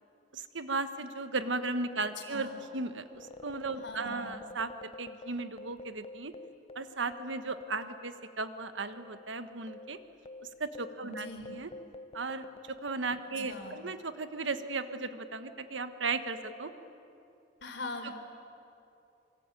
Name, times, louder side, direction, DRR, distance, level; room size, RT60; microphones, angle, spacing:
voice 1, 0.3-6.3 6.7-10.0 10.6-11.7 12.1-16.7 18.0-18.1, right 3 dB, 85° right, 10 dB, 1.4 m, -36 dB
voice 2, 2.2-2.6 3.8-4.4 11.1-11.6 13.4-13.8 17.6-18.1, left 2 dB, 70° left, 3 dB, 4.1 m, -42 dB
sound 1, 3.1-7.9 8.2-8.3 8.9-13.7, left 2 dB, 35° left, 0.6 m, -49 dB
26.0 x 24.5 x 9.1 m, 2.8 s
head